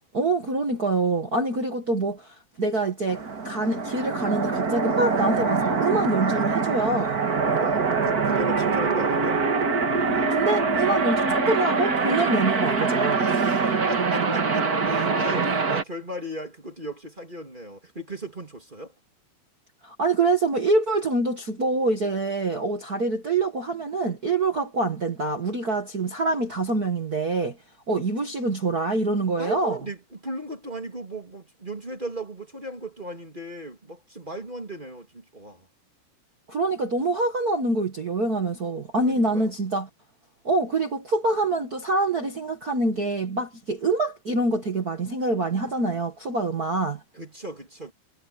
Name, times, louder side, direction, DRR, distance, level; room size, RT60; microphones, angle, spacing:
voice 1, 0.1-7.2 10.3-13.3 19.8-27.6 27.9-29.8 36.5-39.9 40.4-47.0, right 2 dB, 70° right, 0.8 m, -25 dB
sound 1, 3.1-15.8, right 4 dB, 40° right, 1.4 m, -24 dB
voice 2, 7.5-9.4 13.1-18.9 29.4-35.7 39.0-39.5 47.1-47.9, right 1 dB, 15° right, 2.3 m, -36 dB
omnidirectional pair, 4.7 m